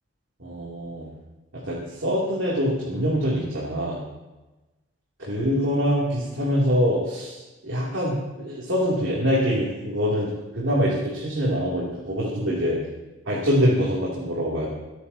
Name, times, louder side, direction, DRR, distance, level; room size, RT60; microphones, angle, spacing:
voice 1, 0.4-1.1 1.5-4.0 5.2-12.8 13.3-14.7, equal, 85° right, -6 dB, 3.1 m, -24 dB
28.0 x 9.8 x 2.9 m, 1.1 s
head